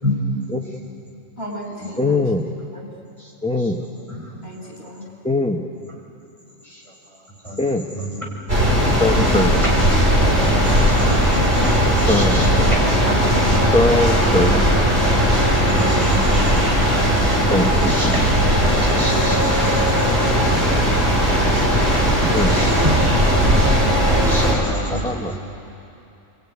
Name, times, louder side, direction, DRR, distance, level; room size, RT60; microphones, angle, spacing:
voice 1, 1.4-2.3 2.7-2.9 4.4-5.1 13.0-13.9, left 1 dB, 50° left, 1 dB, 5.7 m, -32 dB
voice 2, 2.0-2.5 3.4-3.8 5.2-5.6 7.6-7.8 9.0-9.6 11.8-12.8 13.7-14.5 17.5-18.1 20.4-20.6 22.2-22.6 24.9-25.4, left 2 dB, 5° left, 2 dB, 1.0 m, -22 dB
voice 3, 7.4-8.3 9.2-9.3 9.6-9.7 10.0-10.1 10.4-12.8 15.3-16.8 17.8-18.6 18.9-20.2 22.3-23.1 24.1-25.4, equal, 20° right, -3 dB, 6.3 m, -29 dB
sound 1, 8.5-24.5, equal, 50° right, 6.0 m, -17 dB
voice 4, 12.2-13.1 13.3-14.5 16.0-17.1 22.5-23.1, equal, 75° right, -1 dB, 4.0 m, -36 dB
28.0 x 21.5 x 9.9 m, 2.8 s
omnidirectional pair, 1.4 m